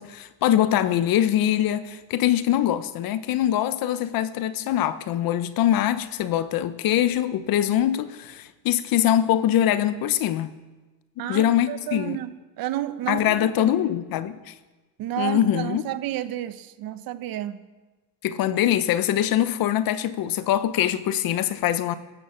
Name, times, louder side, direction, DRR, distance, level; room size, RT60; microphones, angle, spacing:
voice 1, 0.0-10.5 11.2-12.2 13.1-14.5 15.2-15.8 18.2-21.9, left 11 dB, 55° left, 1.0 m, -23 dB
voice 2, 11.2-13.7 15.0-17.6, right 13 dB, 60° right, 1.1 m, -31 dB
12.5 x 11.0 x 7.2 m
cardioid pair, 110°, 41 cm